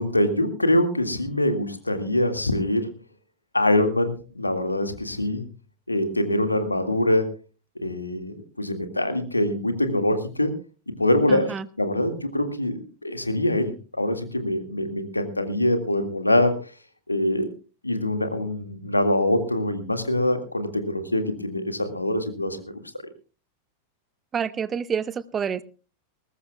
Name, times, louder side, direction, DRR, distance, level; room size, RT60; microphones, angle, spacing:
voice 1, 0.0-2.9 3.5-5.4 5.9-7.3 7.8-10.5 10.9-16.6 17.1-17.5 17.8-22.7, left 1 dB, 85° left, 8 dB, 2.0 m, -24 dB
voice 2, 11.3-11.7 24.3-25.6, right 7 dB, 20° right, 18 dB, 0.8 m, -28 dB
21.0 x 18.5 x 2.3 m, 0.34 s
figure-of-eight pair, 90°, 0 cm